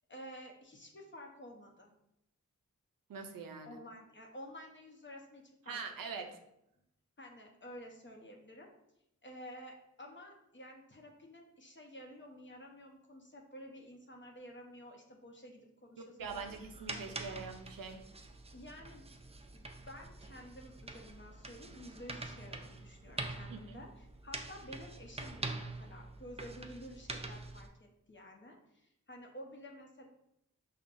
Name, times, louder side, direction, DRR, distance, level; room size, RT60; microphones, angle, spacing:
voice 1, 0.1-1.9 3.6-5.8 7.2-8.7 9.2-17.5 18.5-19.1 19.5-30.1, equal, 35° left, 1 dB, 0.8 m, -51 dB
voice 2, 3.1-3.8 5.7-6.4 16.0-18.0 23.5-23.8, right 5 dB, 90° right, 5 dB, 0.5 m, -44 dB
sound 1, 16.2-27.7, right 3 dB, 20° right, 0.4 m, -45 dB
5.2 x 2.2 x 2.5 m, 0.81 s
cardioid pair, 45°, 33 cm